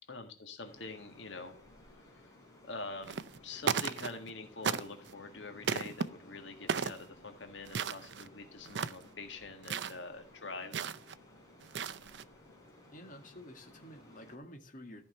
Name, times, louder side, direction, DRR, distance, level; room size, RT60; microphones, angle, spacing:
voice 1, 0.1-1.6 2.1-2.3 2.6-10.9, left 3 dB, 80° left, 5 dB, 1.7 m, -45 dB
sound 1, 0.6-14.4, left 1 dB, 20° left, 3.4 m, -58 dB
sound 2, 3.0-3.4 3.6-4.3 4.6-5.1 5.6-6.1 6.7-7.0 7.7-8.3 8.6-9.1 9.6-10.0 10.7-11.1 11.6-12.2, right 6 dB, 70° right, 0.6 m, -35 dB
voice 2, 12.8-15.0, left 1 dB, 45° left, 4 dB, 1.9 m, -50 dB
14.0 x 5.7 x 5.4 m, 0.37 s
head